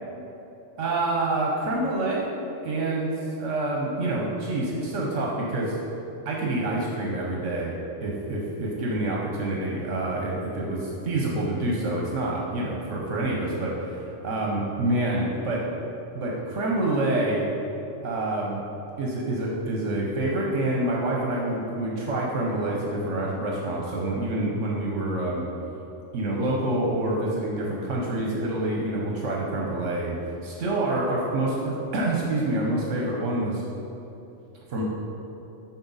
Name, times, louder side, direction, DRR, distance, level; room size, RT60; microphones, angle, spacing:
voice 1, 0.8-2.3 2.6-5.8 6.3-7.7 8.0-15.7 16.1-17.4 18.0-18.6 19.0-25.5 26.1-30.2 30.4-33.6 34.7-34.8, right 2 dB, 75° right, -2 dB, 1.2 m, -27 dB
9.5 x 4.4 x 4.0 m, 2.9 s
omnidirectional pair, 1.3 m